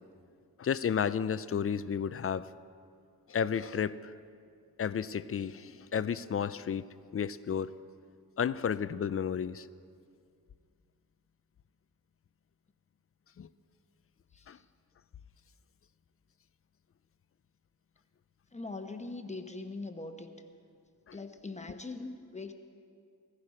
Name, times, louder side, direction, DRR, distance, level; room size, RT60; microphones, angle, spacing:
voice 1, 0.6-2.5 3.3-4.1 4.8-6.8 7.1-7.7 8.4-9.7 13.4-13.5 14.5-14.6 21.1-21.2, left 7 dB, 40° left, 16 dB, 0.4 m, -32 dB
voice 2, 18.5-20.3 21.1-22.5, left 3 dB, 20° left, 6 dB, 1.0 m, -41 dB
16.0 x 15.5 x 4.9 m, 2.3 s
wide cardioid pair, 100°, 38 cm